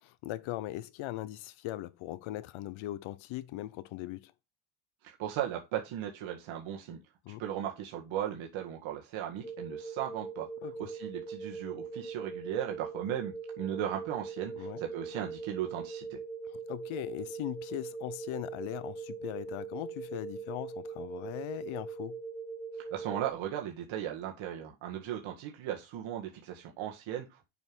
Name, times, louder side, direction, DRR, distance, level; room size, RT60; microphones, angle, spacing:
voice 1, 0.0-4.3 7.2-7.4 10.6-10.7 14.5-14.8 16.5-22.2, left 15 dB, 80° left, 0.9 m, -39 dB
voice 2, 5.0-7.0 7.4-10.5 10.8-16.2 22.8-27.4, right 10 dB, 85° right, 1.8 m, -37 dB
sound 1, 9.4-23.3, right 4 dB, 10° left, 1.2 m, -41 dB
7.0 x 5.6 x 6.2 m
cardioid pair, 155°, 47 cm